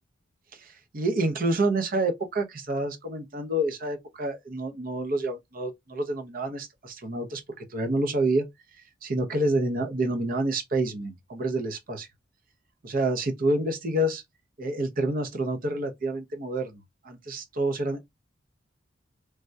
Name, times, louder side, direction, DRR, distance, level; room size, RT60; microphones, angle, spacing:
voice 1, 0.6-8.5 9.0-12.1 12.8-14.2 14.6-18.0, right 1 dB, 45° right, 0.7 m, -28 dB
3.3 x 2.2 x 2.6 m
head